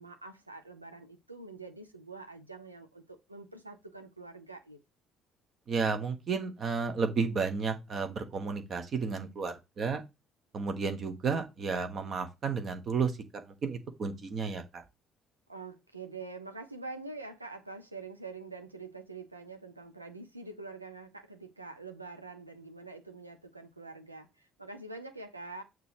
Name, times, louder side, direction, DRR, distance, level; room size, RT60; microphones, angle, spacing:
voice 1, 0.0-4.8 15.5-25.6, right 3 dB, 85° right, 0.5 m, -45 dB
voice 2, 5.7-10.0 10.5-14.8, right 5 dB, 45° right, 1.2 m, -32 dB
6.7 x 3.0 x 5.0 m
figure-of-eight pair, 50°, 0 cm